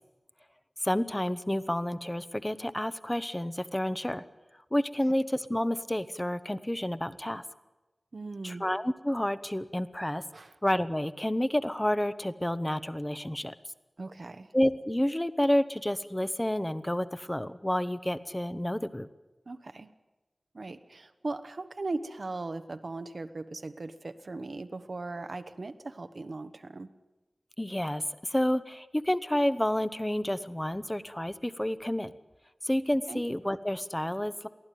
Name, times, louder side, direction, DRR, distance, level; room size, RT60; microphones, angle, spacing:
voice 1, 0.8-4.2 4.7-7.4 8.4-10.2 10.6-13.5 14.5-19.1 27.6-32.1 32.6-34.5, left 1 dB, 15° left, 14 dB, 1.0 m, -29 dB
voice 2, 8.1-8.6 10.3-10.6 14.0-14.5 19.5-19.9 20.5-26.9 33.1-33.2, right 3 dB, 70° right, 9 dB, 1.2 m, -38 dB
23.5 x 15.5 x 9.3 m, 1.1 s
wide cardioid pair, 70°, 0 cm